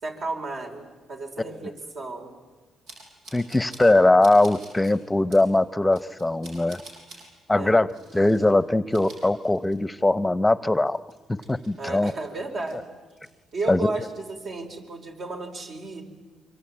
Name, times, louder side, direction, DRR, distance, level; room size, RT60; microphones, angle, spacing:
voice 1, 0.0-2.3 7.5-7.8 11.8-12.8 13.5-16.0, right 3 dB, 60° right, 3 dB, 4.9 m, -33 dB
sound 1, 2.9-3.9 4.2-4.9 5.3-5.5 5.9-7.3 7.9-8.5 8.8-10.0 10.3-10.4 10.9-12.8 13.1-13.6, right 2 dB, 90° right, 7.0 m, -48 dB
voice 2, 3.3-6.8 7.5-7.9 8.1-11.0 11.5-12.1 13.7-13.9, left 2 dB, 10° left, 16 dB, 0.9 m, -21 dB
25.5 x 25.0 x 8.8 m, 1.4 s
cardioid pair, 90°, 0 cm